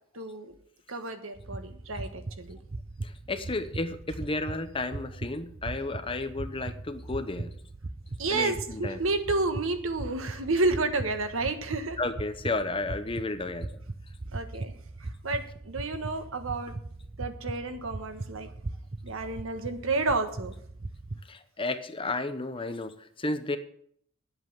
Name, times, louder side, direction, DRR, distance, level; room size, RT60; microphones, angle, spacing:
voice 1, 0.1-0.5 0.9-2.6 8.2-12.0 14.3-14.7 15.2-16.7 17.2-18.5 19.0-20.5, right 3 dB, 75° right, 8 dB, 1.4 m, -30 dB
sound 1, 1.3-21.2, right 2 dB, 35° right, 0.6 m, -40 dB
voice 2, 3.0-7.5 8.3-9.0 12.0-13.8 21.3-23.6, left 2 dB, 25° left, 8 dB, 0.9 m, -32 dB
10.0 x 8.1 x 7.3 m, 0.65 s
head